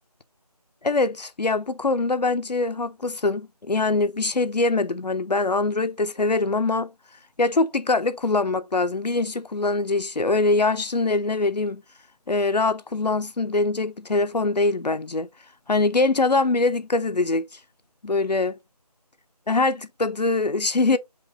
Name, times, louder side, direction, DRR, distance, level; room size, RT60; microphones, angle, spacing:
voice 1, 0.8-6.9 7.4-11.8 12.3-15.3 15.7-17.5 18.0-18.6 19.5-21.0, left 3 dB, 85° left, 0.7 m, -23 dB
5.3 x 2.5 x 3.9 m
figure-of-eight pair, 170°, 21 cm